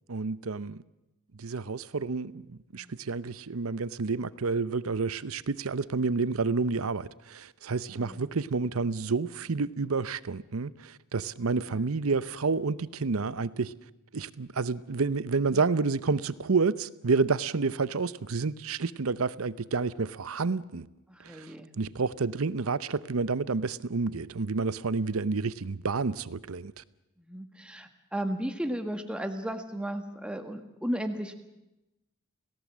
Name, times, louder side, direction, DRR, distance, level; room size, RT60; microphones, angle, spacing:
voice 1, 0.1-0.8 1.4-13.7 14.1-20.9 21.3-21.5 21.8-26.8, right 4 dB, 85° right, 0.8 m, -29 dB
voice 2, 7.9-8.3 11.7-11.9 21.1-21.7 27.2-31.3, equal, 5° right, 1.7 m, -35 dB
29.0 x 17.5 x 7.5 m
head